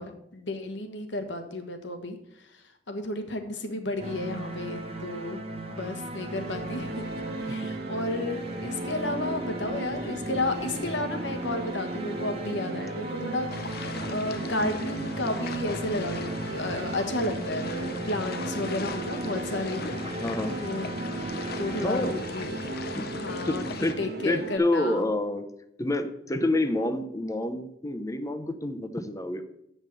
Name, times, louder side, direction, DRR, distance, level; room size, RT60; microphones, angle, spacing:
voice 1, 0.0-5.4 5.7-7.1 7.4-19.8 20.5-20.9 21.4-22.6 23.1-25.1, left 2 dB, 80° left, 7 dB, 1.4 m, -32 dB
sound 1, 4.0-22.9, right 2 dB, 35° right, 1.1 m, -37 dB
sound 2, 6.3-24.6, right 3 dB, 65° right, 1.1 m, -37 dB
sound 3, 13.5-23.9, left 4 dB, 60° left, 0.7 m, -39 dB
voice 2, 20.2-20.6 21.8-22.2 22.9-23.1 23.5-24.0 24.2-25.5 25.8-29.4, left 2 dB, 20° left, 8 dB, 0.7 m, -28 dB
8.0 x 5.4 x 7.4 m, 0.79 s
head